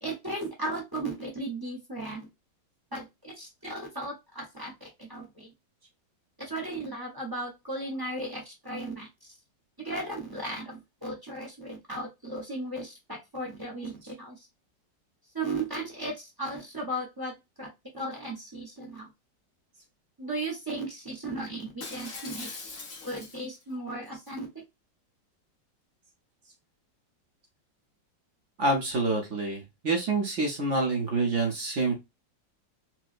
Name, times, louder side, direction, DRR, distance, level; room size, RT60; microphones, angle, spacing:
voice 1, 0.0-2.3 2.9-4.7 5.0-5.5 6.4-9.1 9.8-13.9 14.2-14.4 15.3-17.7 17.9-19.1 20.2-22.8 23.0-24.5, right 2 dB, 40° right, -1 dB, 0.3 m, -36 dB
Shatter, 21.8-23.6 24.1-24.3, left 4 dB, 55° left, 1.2 m, -41 dB
voice 2, 28.6-31.9, right 2 dB, 55° right, 1 dB, 0.9 m, -27 dB
4.5 x 2.0 x 2.4 m, 0.22 s
omnidirectional pair, 2.0 m